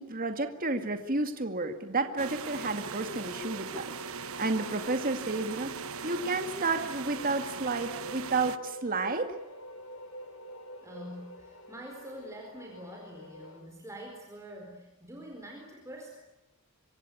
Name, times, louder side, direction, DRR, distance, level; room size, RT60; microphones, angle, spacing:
voice 1, 0.0-3.9 4.4-9.4, right 3 dB, 40° right, 6 dB, 2.1 m, -31 dB
sound 1, 2.2-8.6, right 6 dB, 75° right, 1.2 m, -39 dB
sound 2, 2.5-13.6, equal, 85° left, 5.1 m, -48 dB
voice 2, 10.8-16.1, equal, 15° right, 0 dB, 4.4 m, -45 dB
26.0 x 25.0 x 8.6 m, 1.0 s
head